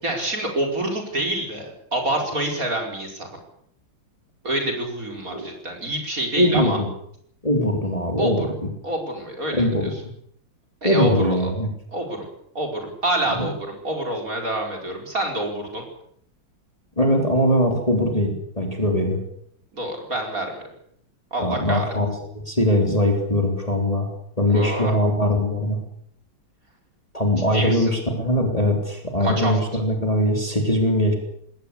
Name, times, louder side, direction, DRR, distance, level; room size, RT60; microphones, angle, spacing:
voice 1, 0.0-3.3 4.4-6.8 8.2-8.3 8.8-9.7 10.8-11.5 11.9-12.3 12.6-15.9 19.7-20.6 21.3-21.9 24.5-24.9 27.5-27.9 29.2-29.8, right 1 dB, 40° right, 2 dB, 5.3 m, -27 dB
voice 2, 6.4-6.9 7.4-8.7 9.5-9.9 10.8-11.7 13.4-13.5 17.0-19.2 21.4-24.1 24.4-25.8 27.1-31.1, left 1 dB, 15° left, 3 dB, 3.7 m, -21 dB
20.5 x 18.5 x 8.5 m, 0.69 s
omnidirectional pair, 2.3 m